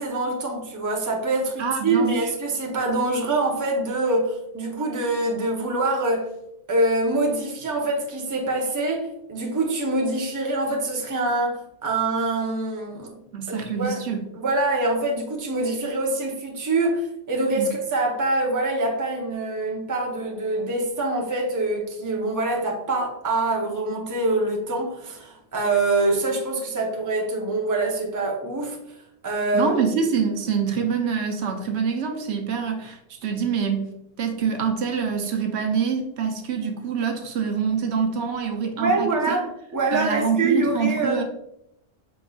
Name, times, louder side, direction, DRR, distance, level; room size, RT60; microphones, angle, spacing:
voice 1, 0.0-6.3 6.7-13.2 13.5-14.0 14.3-28.8 29.2-29.7 38.8-41.2, right 2 dB, 20° right, 0 dB, 0.6 m, -25 dB
voice 2, 1.6-2.3 13.3-14.3 17.6-17.7 29.5-33.9 34.2-39.4 39.9-41.2, right 6 dB, 75° right, 4 dB, 0.9 m, -25 dB
5.2 x 3.6 x 2.3 m, 0.80 s
omnidirectional pair, 1.1 m